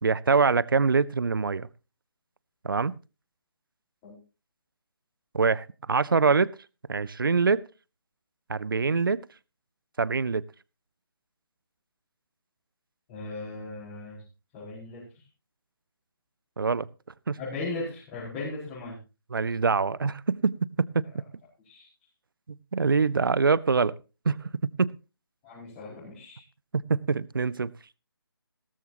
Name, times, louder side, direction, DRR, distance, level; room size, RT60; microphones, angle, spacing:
voice 1, 0.0-1.7 2.6-3.0 5.3-6.5 6.9-7.6 8.5-9.2 10.0-10.4 16.6-16.9 17.3-17.4 19.3-21.1 22.7-23.9 24.3-24.5 24.8-24.9 26.7-27.7, right 4 dB, 60° right, 22 dB, 0.6 m, -24 dB
voice 2, 13.1-14.2 14.5-15.2 17.4-19.0 21.6-21.9 25.4-26.4, left 2 dB, 20° left, -8 dB, 5.2 m, -37 dB
17.0 x 13.5 x 2.9 m, 0.31 s
figure-of-eight pair, 145°, 13 cm